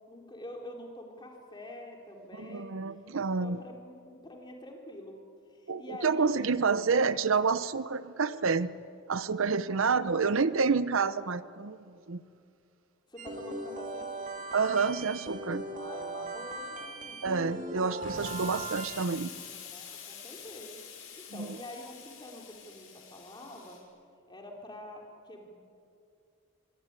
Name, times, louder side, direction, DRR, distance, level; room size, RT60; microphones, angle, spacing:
voice 1, 0.1-2.8 3.2-5.2 5.5-6.5 9.7-10.4 13.1-14.5 15.7-17.4 19.4-23.8 24.3-25.5, left 1 dB, 20° left, 1 dB, 3.7 m, -46 dB
voice 2, 2.4-3.6 5.7-8.7 9.1-12.2 14.5-15.7 17.2-19.3 21.4-21.5, right 5 dB, 65° right, 15 dB, 0.7 m, -28 dB
sound 1, 13.2-19.0, right 2 dB, 35° right, 2.6 m, -39 dB
Explosion, 18.0-23.8, left 6 dB, 65° left, 5.8 m, -46 dB
25.0 x 23.0 x 9.6 m, 2.5 s
head